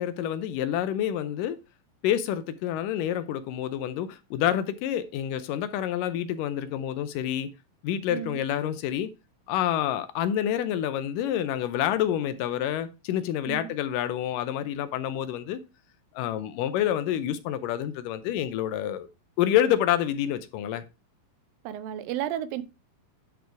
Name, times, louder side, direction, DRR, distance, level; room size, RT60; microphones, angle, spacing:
voice 1, 0.0-1.6 2.0-7.5 7.8-9.1 9.5-15.6 16.2-19.1 19.4-20.8, left 11 dB, 80° left, 2.2 m, -28 dB
voice 2, 8.1-8.4 13.5-13.7 21.6-22.6, right 11 dB, 85° right, 2.4 m, -32 dB
10.5 x 4.6 x 4.6 m
omnidirectional pair, 4.0 m